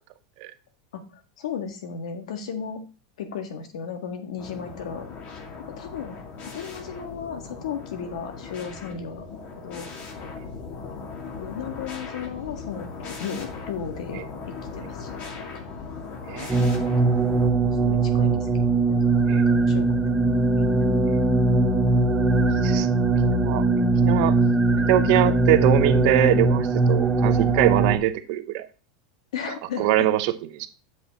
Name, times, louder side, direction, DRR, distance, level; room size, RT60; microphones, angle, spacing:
voice 1, 0.9-2.8 3.2-5.1 5.8-6.2 6.5-9.9 10.9-11.0 11.3-12.9 13.2-14.2 14.7-15.5 16.8-17.2 17.8-18.5 18.9-19.1 19.5-20.2 20.6-21.0 29.3-30.1, left 7 dB, 85° left, 7 dB, 1.7 m, -35 dB
sound 1, 4.4-17.5, left 4 dB, 40° left, 1.9 m, -38 dB
sound 2, 16.5-28.0, right 2 dB, 5° right, 0.9 m, -20 dB
voice 2, 24.0-24.4 24.9-28.7 29.8-30.7, right 14 dB, 55° right, 11 dB, 0.8 m, -23 dB
7.5 x 5.9 x 4.1 m, 0.35 s
supercardioid pair, 140°, 3 cm